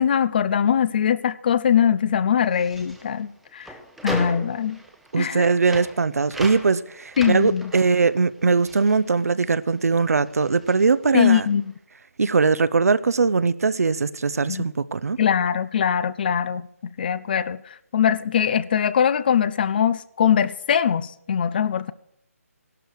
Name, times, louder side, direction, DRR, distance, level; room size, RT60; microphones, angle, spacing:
voice 1, 0.0-3.7 4.0-4.8 5.2-5.5 7.2-7.7 11.1-11.7 14.5-14.6 15.2-16.7 17.0-17.6 17.9-21.9, left 8 dB, 35° left, 0.6 m, -21 dB
sound 1, 2.4-9.9 10.2-11.6, right 1 dB, ahead, 0.9 m, -38 dB
voice 2, 5.1-11.5 12.2-15.2, right 4 dB, 75° right, 0.8 m, -21 dB
17.5 x 12.0 x 4.7 m
hypercardioid pair, 160°, 8 cm